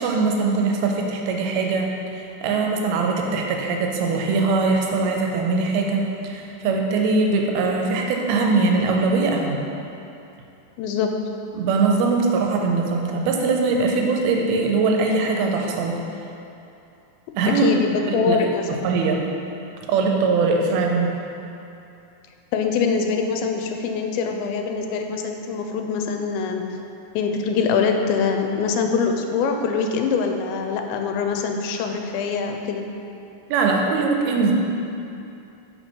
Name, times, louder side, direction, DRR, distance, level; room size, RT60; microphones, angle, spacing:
voice 1, 0.0-9.6 11.5-16.0 17.4-17.7 18.1-18.4 18.8-19.2 19.9-21.1 33.5-34.5, right 4 dB, 85° right, 1 dB, 2.6 m, -21 dB
voice 2, 10.8-11.1 17.5-18.8 22.5-26.6 27.2-32.9, left 5 dB, 85° left, 4 dB, 2.4 m, -24 dB
5.7 x 5.6 x 4.4 m, 2.8 s
omnidirectional pair, 4.3 m